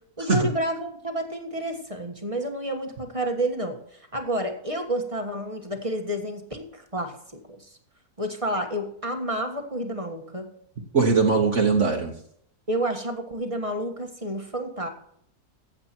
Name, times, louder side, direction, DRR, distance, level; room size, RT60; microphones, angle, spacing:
voice 1, 0.2-7.1 7.5-7.7 8.2-10.5 12.7-14.9, right 1 dB, 20° right, 4 dB, 1.5 m, -30 dB
voice 2, 10.9-12.1, right 4 dB, 50° right, 0 dB, 1.7 m, -20 dB
15.5 x 7.9 x 4.5 m, 0.67 s
omnidirectional pair, 1.6 m